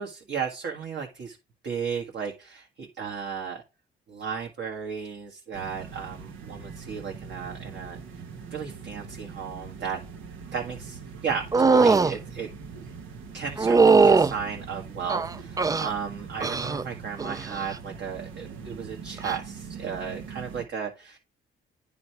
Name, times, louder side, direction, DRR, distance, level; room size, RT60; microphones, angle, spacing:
voice 1, 0.0-1.4 1.6-3.6 4.1-8.2 8.5-10.0 10.5-12.5 13.3-21.2, right 6 dB, 60° right, 1 dB, 1.7 m, -34 dB
sound 1, 5.5-20.6, right 6 dB, 85° right, 1.3 m, -42 dB
sound 2, 11.5-12.1 13.6-14.3 15.1-15.9 16.4-16.8 17.2-17.6 19.2-19.4, right 4 dB, 20° right, 0.4 m, -20 dB
10.0 x 3.8 x 4.6 m, 0.29 s
cardioid pair, 90°, 20 cm